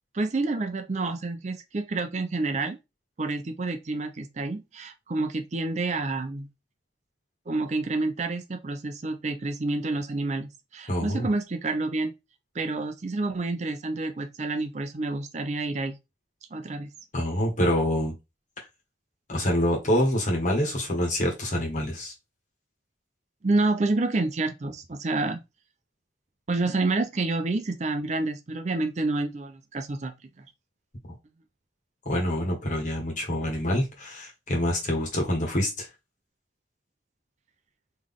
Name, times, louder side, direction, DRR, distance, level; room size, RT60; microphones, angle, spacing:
voice 1, 0.1-2.8 3.2-6.5 7.5-12.1 12.5-16.0 16.5-16.9 23.4-25.4 26.5-30.5, right 2 dB, 40° right, 0.5 m, -28 dB
voice 2, 10.9-11.3 17.1-18.2 18.6-18.7 19.3-22.1 32.0-35.9, equal, 45° left, 1.6 m, -26 dB
4.0 x 3.1 x 3.6 m
head